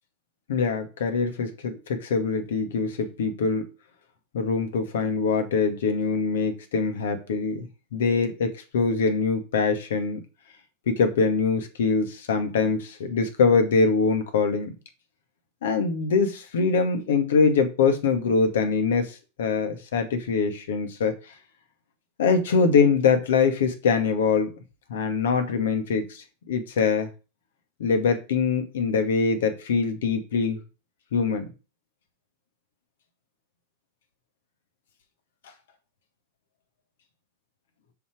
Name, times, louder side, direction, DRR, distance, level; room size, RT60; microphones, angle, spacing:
voice 1, 0.5-3.7 4.3-10.2 10.9-14.7 15.6-21.1 22.2-24.5 24.9-27.1 27.8-30.6 31.1-31.5, left 5 dB, 60° left, 8 dB, 2.2 m, -23 dB
6.9 x 6.5 x 5.2 m, 0.31 s
figure-of-eight pair, 90°, 0 cm